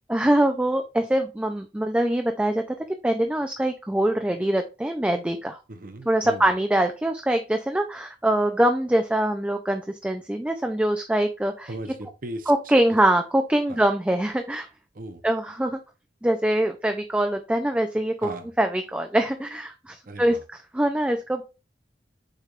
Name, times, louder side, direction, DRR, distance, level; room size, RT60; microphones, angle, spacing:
voice 1, 0.1-2.6 3.0-5.6 6.1-11.7 12.5-14.7 15.2-15.8 16.2-18.3 18.6-21.4, right 1 dB, 5° right, 5 dB, 0.4 m, -23 dB
voice 2, 5.7-6.5 11.7-12.5 13.7-13.8 14.9-15.2 18.2-18.5 20.1-20.4, right 1 dB, 50° right, 7 dB, 0.8 m, -37 dB
6.5 x 3.3 x 2.4 m, 0.30 s
head